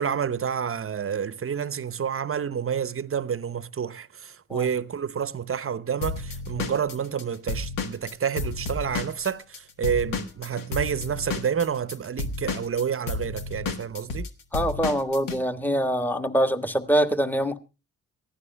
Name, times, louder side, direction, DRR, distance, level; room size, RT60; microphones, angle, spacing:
voice 1, 0.0-14.3, right 7 dB, 35° right, 0.8 m, -29 dB
Drum kit / Drum, 6.0-9.6 9.8-15.4, left 3 dB, 65° left, 1.4 m, -31 dB
voice 2, 14.5-17.6, equal, 5° left, 1.3 m, -24 dB
23.5 x 15.0 x 2.2 m
hypercardioid pair, 40°, 36 cm